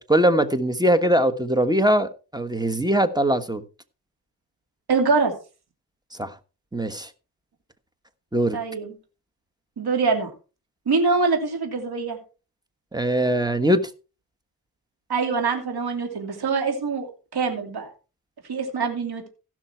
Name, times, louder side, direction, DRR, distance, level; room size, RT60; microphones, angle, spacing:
voice 1, 0.0-3.6 6.2-6.3 6.7-7.1 8.3-8.6 12.9-13.8, right 1 dB, 10° right, 10 dB, 1.3 m, -21 dB
voice 2, 4.9-5.3 8.5-8.9 9.8-10.3 10.9-12.2 15.1-17.1 17.3-17.9 18.5-19.3, right 4 dB, 75° right, 4 dB, 2.7 m, -24 dB
16.5 x 6.2 x 4.5 m, 0.34 s
wide cardioid pair, 90°, 38 cm